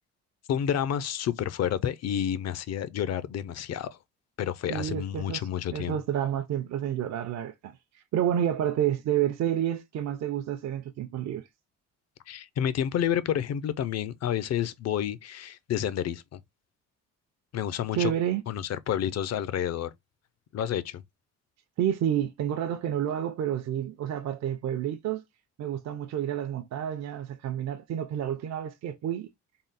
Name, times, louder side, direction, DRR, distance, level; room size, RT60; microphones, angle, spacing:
voice 1, 0.5-4.0 4.4-6.0 12.3-16.4 17.5-18.1 18.5-19.9 20.5-21.0, left 9 dB, 60° left, 0.5 m, -29 dB
voice 2, 4.7-11.5 17.9-18.4 21.8-25.2 25.6-29.3, right 10 dB, 60° right, 0.6 m, -29 dB
3.7 x 2.1 x 4.0 m
cardioid pair, 90°, 30 cm